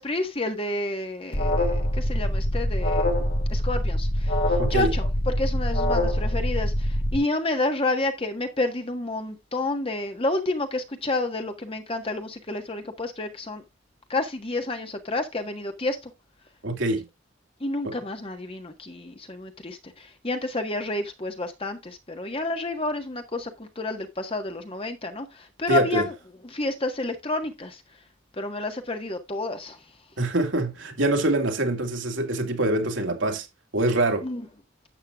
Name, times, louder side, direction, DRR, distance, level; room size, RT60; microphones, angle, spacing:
voice 1, 0.0-3.2 3.5-13.6 14.1-16.1 17.6-26.1 26.5-27.8 28.4-29.8 34.2-34.4, left 2 dB, 30° left, 1.5 m, -30 dB
Alarm, 1.3-7.2, left 1 dB, 50° left, 1.8 m, -24 dB
voice 2, 4.6-4.9 16.6-17.0 17.8-17.9 25.7-26.0 30.2-33.5 33.7-34.2, right 1 dB, 70° right, 2.3 m, -24 dB
12.0 x 8.1 x 2.4 m
head